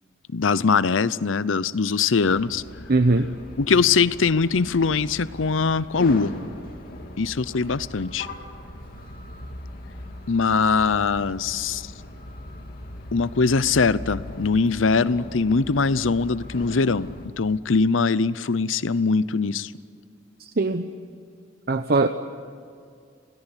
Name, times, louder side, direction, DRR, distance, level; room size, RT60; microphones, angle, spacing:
voice 1, 0.3-2.6 3.6-6.3 7.2-8.3 10.3-11.9 13.1-19.7, left 4 dB, 85° left, 17 dB, 0.7 m, -22 dB
sound 1, 2.2-17.3, left 1 dB, 50° left, 3.0 m, -39 dB
voice 2, 2.9-3.3 20.4-20.9 21.7-22.1, right 3 dB, 55° right, 8 dB, 0.9 m, -21 dB
28.0 x 18.0 x 9.9 m, 2.3 s
head